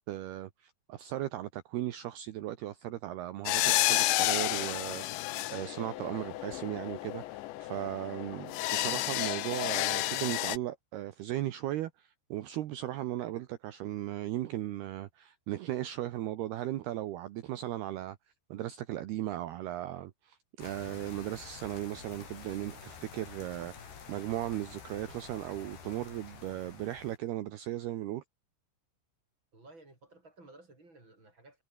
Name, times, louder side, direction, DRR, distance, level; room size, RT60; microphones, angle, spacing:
voice 1, 0.1-18.2 18.5-28.2, right 14 dB, 70° right, 2.9 m, -37 dB
sound 1, 3.5-10.6, left 17 dB, 80° left, 3.2 m, -31 dB
sound 2, 20.6-27.2, left 7 dB, 65° left, 6.4 m, -49 dB
voice 2, 29.5-31.6, right 2 dB, 25° right, 7.3 m, -55 dB
omnidirectional pair, 5.3 m